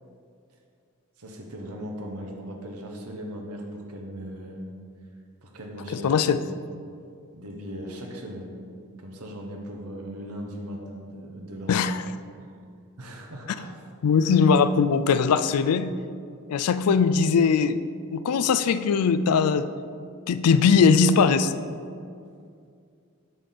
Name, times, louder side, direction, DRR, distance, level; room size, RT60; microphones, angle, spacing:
voice 1, 1.2-4.7 5.4-6.4 7.3-8.6 9.0-11.8 13.0-13.8 14.2-14.4, equal, 85° right, 2 dB, 1.1 m, -38 dB
voice 2, 5.9-6.4 11.7-12.0 14.0-15.9 16.5-17.8 18.1-19.7 20.3-21.5, left 5 dB, 90° left, 12 dB, 0.4 m, -20 dB
7.7 x 4.2 x 6.6 m, 2.3 s
head